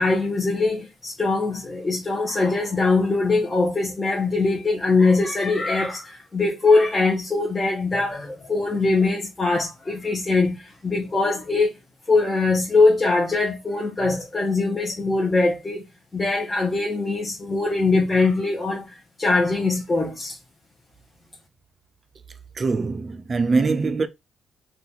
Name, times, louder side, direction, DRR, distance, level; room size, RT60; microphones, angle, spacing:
voice 1, 0.0-11.7 12.1-15.8 16.1-18.8 19.2-20.4, left 3 dB, 20° left, 0.8 m, -22 dB
voice 2, 22.6-24.1, right 4 dB, 35° right, 0.5 m, -22 dB
3.7 x 2.3 x 2.9 m
cardioid pair, 90°, 0 cm